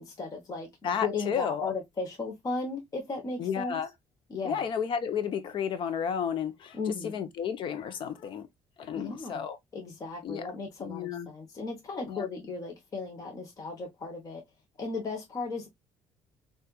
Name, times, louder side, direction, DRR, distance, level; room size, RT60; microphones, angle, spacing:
voice 1, 0.0-3.8 4.3-4.6 6.7-7.2 8.9-9.4 9.7-14.4 14.8-15.7, left 4 dB, 35° left, 1.0 m, -36 dB
voice 2, 0.8-1.7 3.4-3.9 4.4-8.5 8.8-9.6 10.2-10.5 10.8-11.3 12.1-12.3, left 7 dB, 55° left, 0.8 m, -32 dB
4.2 x 2.5 x 2.3 m
cardioid pair, 110°, 10 cm